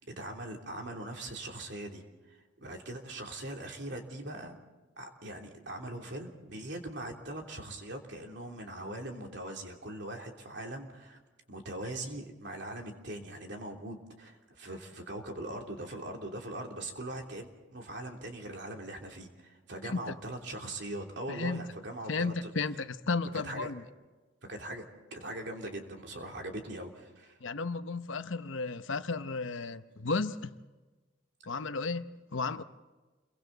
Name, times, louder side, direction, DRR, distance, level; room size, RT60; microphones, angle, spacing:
voice 1, 0.2-2.0 2.3-4.6 5.0-11.2 11.5-17.5 17.7-22.5 23.4-23.7 24.4-24.9 25.1-27.4, right 1 dB, 60° right, 3.1 m, -41 dB
voice 2, 21.3-21.6 22.1-23.8 27.4-30.5 31.5-32.6, left 4 dB, 80° left, 0.9 m, -33 dB
29.5 x 23.0 x 4.1 m
head